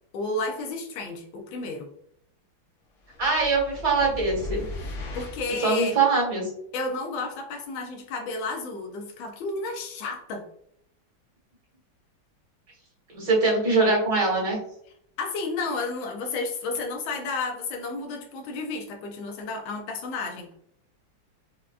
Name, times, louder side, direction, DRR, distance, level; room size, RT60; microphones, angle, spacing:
voice 1, 0.1-1.9 5.1-6.0 6.7-10.4 15.2-20.5, left 3 dB, 90° left, 1 dB, 1.4 m, -32 dB
sound 1, 3.1-5.7, left 2 dB, 60° left, 0.8 m, -37 dB
voice 2, 3.2-4.6 5.6-6.5 13.1-14.6, right 3 dB, 55° right, -3 dB, 2.0 m, -23 dB
5.0 x 2.2 x 2.4 m, 0.71 s
omnidirectional pair, 2.1 m